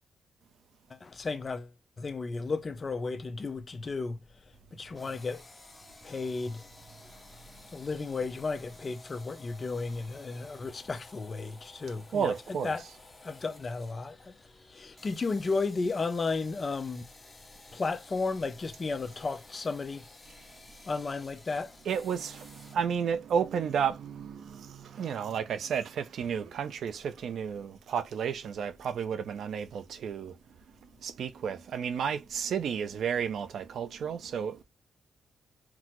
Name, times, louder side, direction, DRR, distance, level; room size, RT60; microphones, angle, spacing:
voice 1, 1.0-1.7 2.0-4.2 4.7-5.4 6.0-6.6 7.7-12.3 12.6-12.8 13.2-14.4 14.7-17.0 17.7-20.0 20.9-21.7, left 4 dB, 35° left, 0.5 m, -33 dB
sound 1, 4.9-22.8, left 2 dB, 20° left, 0.9 m, -54 dB
voice 2, 11.9-13.0 20.3-20.4 21.5-30.4 30.7-34.6, right 7 dB, 70° right, 0.5 m, -32 dB
5.9 x 2.0 x 3.0 m
cardioid pair, 110°, 0 cm